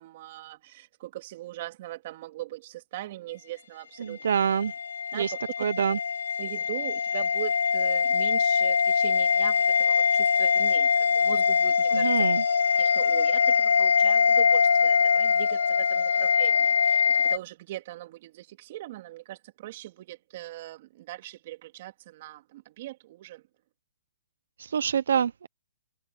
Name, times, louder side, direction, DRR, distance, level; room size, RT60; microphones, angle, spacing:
voice 1, 0.0-4.2 5.1-5.4 6.4-12.2 12.8-23.4, right 15 dB, 40° right, 2.8 m, -40 dB
voice 2, 4.0-4.7 5.1-5.3 5.6-6.0 11.9-12.4 24.6-25.5, right 7 dB, 70° right, 0.7 m, -26 dB
sound 1, 4.3-17.4, left 6 dB, 80° left, 1.6 m, -23 dB
hypercardioid pair, 155°, 0 cm